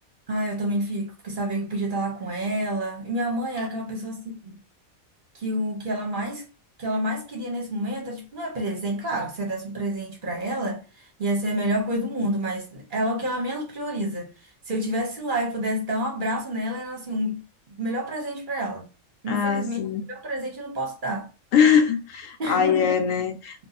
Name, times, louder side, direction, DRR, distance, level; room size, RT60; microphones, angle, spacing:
voice 1, 0.3-4.6 5.3-6.5 6.8-17.4 17.7-18.9 19.2-19.8 20.1-21.3 22.4-22.9, right 1 dB, 45° right, 0.8 m, -29 dB
voice 2, 19.3-20.0 21.5-23.7, left 7 dB, 80° left, 1.0 m, -22 dB
2.7 x 2.3 x 3.9 m
omnidirectional pair, 1.4 m